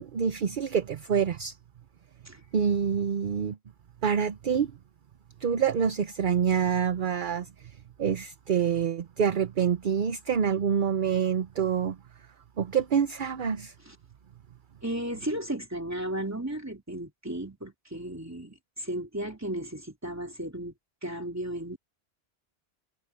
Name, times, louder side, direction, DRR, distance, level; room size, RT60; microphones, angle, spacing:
voice 1, 0.0-1.6 2.5-3.6 4.0-4.7 5.4-7.5 8.0-12.0 12.6-13.7, right 7 dB, 55° right, 0.9 m, -26 dB
voice 2, 14.8-20.7 21.0-21.8, right 1 dB, 15° right, 3.3 m, -34 dB
omnidirectional pair, 1.1 m